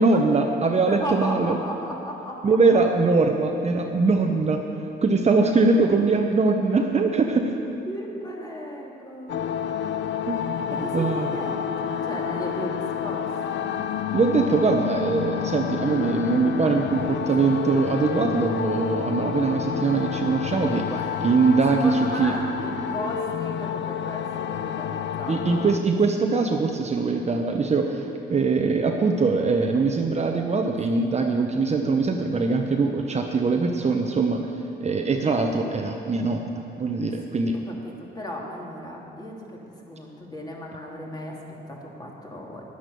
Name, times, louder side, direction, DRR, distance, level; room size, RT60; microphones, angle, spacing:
voice 1, 0.0-1.6 2.4-4.6 5.0-7.5 10.3-10.4 10.7-11.3 14.1-20.9 21.2-22.3 25.3-34.4 34.8-36.5 36.8-37.6, right 4 dB, 35° right, 3 dB, 0.9 m, -22 dB
voice 2, 0.9-2.8 7.8-9.6 10.7-13.8 20.8-21.2 21.8-25.7 37.3-37.4 37.7-42.6, equal, 20° left, -2 dB, 2.7 m, -35 dB
sound 1, 9.3-25.8, left 8 dB, 65° left, 0.5 m, -29 dB
11.0 x 9.9 x 6.9 m, 2.7 s
cardioid pair, 90°, 20 cm